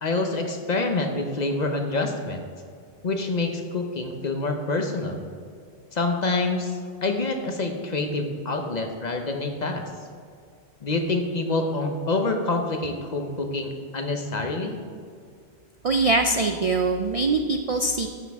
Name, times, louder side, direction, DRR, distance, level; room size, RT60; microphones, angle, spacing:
voice 1, 0.0-2.4 3.0-5.2 5.9-9.9 10.8-14.8, left 2 dB, 45° left, 4 dB, 0.9 m, -27 dB
voice 2, 15.8-18.1, right 3 dB, 65° right, 6 dB, 0.3 m, -23 dB
12.0 x 7.4 x 3.5 m, 2.2 s
omnidirectional pair, 1.1 m